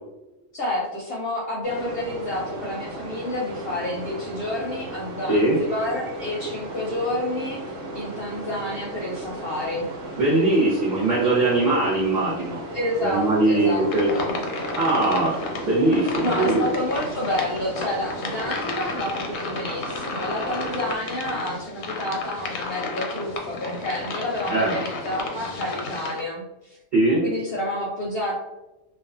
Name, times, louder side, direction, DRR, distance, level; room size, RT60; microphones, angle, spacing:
voice 1, 0.5-9.9 12.7-13.8 14.1-14.4 16.2-26.8 27.2-28.3, left 1 dB, 60° left, -4 dB, 0.7 m, -29 dB
sound 1, 1.6-21.0, right 1 dB, 75° right, 1.0 m, -36 dB
voice 2, 10.2-12.6 13.0-14.1 14.7-15.4 15.6-16.6 24.5-24.7 26.9-27.2, right 2 dB, 45° right, -7 dB, 0.8 m, -21 dB
sound 2, 13.9-26.2, left 3 dB, 85° left, 1.0 m, -32 dB
2.5 x 2.2 x 2.4 m, 0.99 s
omnidirectional pair, 1.3 m